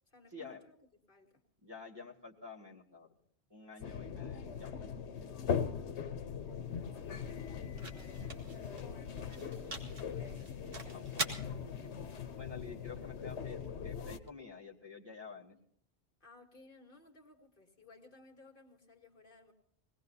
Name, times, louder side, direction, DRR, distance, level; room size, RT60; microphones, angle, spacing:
voice 1, 0.1-0.8 1.1-1.4 3.8-4.1 6.9-11.1 16.2-19.5, left 2 dB, 50° left, 2 dB, 2.0 m, -59 dB
voice 2, 1.6-3.1 3.5-4.8 10.9-11.3 12.4-15.6, left 4 dB, 20° right, -1 dB, 2.3 m, -49 dB
sound 1, 3.8-14.2, left 7 dB, 85° left, 1.2 m, -40 dB
sound 2, 6.2-14.3, right 2 dB, 55° right, 2.2 m, -46 dB
22.5 x 18.5 x 2.8 m, 0.70 s
omnidirectional pair, 1.1 m